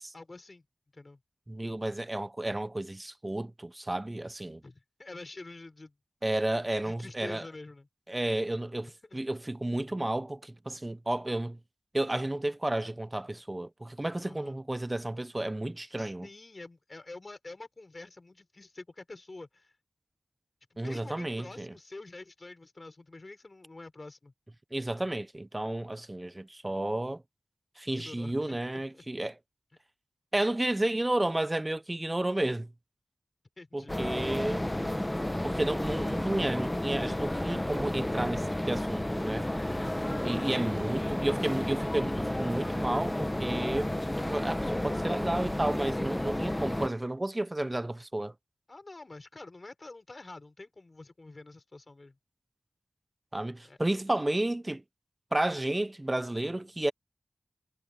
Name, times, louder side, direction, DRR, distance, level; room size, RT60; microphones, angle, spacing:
voice 1, 0.1-0.6 0.9-1.2 4.6-5.9 6.8-7.9 8.8-9.2 14.2-14.6 16.0-19.7 20.7-24.3 28.0-29.0 33.6-34.0 40.3-40.6 48.7-52.1 53.6-53.8, left 2 dB, 45° left, 4.6 m, -47 dB
voice 2, 1.5-4.6 6.2-7.5 8.1-11.6 11.9-16.3 20.8-21.7 24.7-27.2 27.8-29.4 30.3-32.7 33.7-34.6 35.4-39.5 40.2-43.9 44.2-48.3 53.3-54.8 55.3-56.9, right 1 dB, 25° right, 0.4 m, -32 dB
sound 1, 33.9-46.9, left 1 dB, 15° left, 0.8 m, -32 dB
wide cardioid pair, 55°, 0 cm